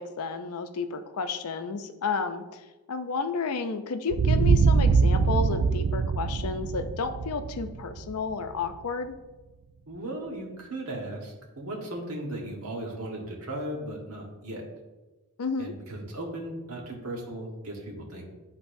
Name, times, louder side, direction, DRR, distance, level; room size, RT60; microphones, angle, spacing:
voice 1, 0.0-2.6 2.9-9.2 15.4-15.7, left 4 dB, 90° left, 8 dB, 0.5 m, -31 dB
sound 1, 4.1-8.7, right 5 dB, 60° right, 0.3 m, -23 dB
voice 2, 9.9-14.6 15.6-18.2, right 1 dB, 80° right, 0 dB, 1.3 m, -36 dB
10.0 x 4.0 x 2.6 m, 1.1 s
head